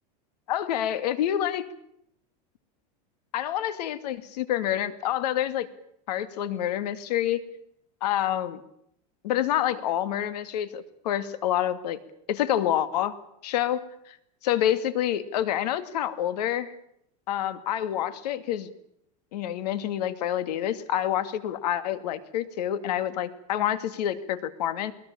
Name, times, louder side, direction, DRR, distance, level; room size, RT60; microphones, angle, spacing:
voice 1, 0.5-1.7 3.3-5.7 6.1-7.4 8.0-8.6 9.2-12.0 12.3-13.1 13.4-14.2 14.4-16.7 17.3-18.7 19.3-24.9, left 11 dB, 85° left, 12 dB, 2.3 m, -27 dB
21.5 x 21.0 x 8.7 m, 0.74 s
supercardioid pair, 165°, 20 cm